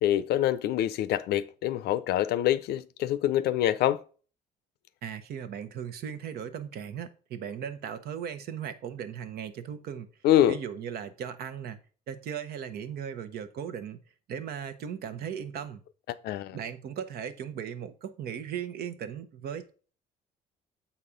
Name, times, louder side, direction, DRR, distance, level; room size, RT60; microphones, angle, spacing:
voice 1, 0.0-4.0 10.2-10.6 16.1-16.6, left 12 dB, 75° left, 0.5 m, -25 dB
voice 2, 5.0-10.1 10.5-11.8 12.1-14.0 14.3-15.8 16.5-19.7, right 8 dB, 65° right, 0.9 m, -37 dB
7.4 x 4.2 x 5.0 m
cardioid pair, 110°, 17 cm